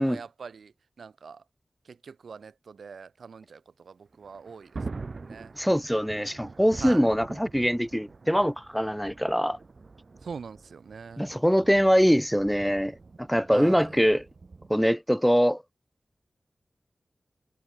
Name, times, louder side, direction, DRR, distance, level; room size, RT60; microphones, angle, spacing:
voice 1, 0.0-1.4 1.8-4.8 5.2-5.5 6.8-7.1 10.2-11.3 13.5-13.9, right 5 dB, 90° right, 3.2 m, -43 dB
Thunder, 4.1-14.9, right 3 dB, 60° right, 2.1 m, -44 dB
voice 2, 5.6-9.6 11.2-14.2 14.7-15.6, equal, ahead, 1.9 m, -23 dB
cardioid pair, 45°, 0 cm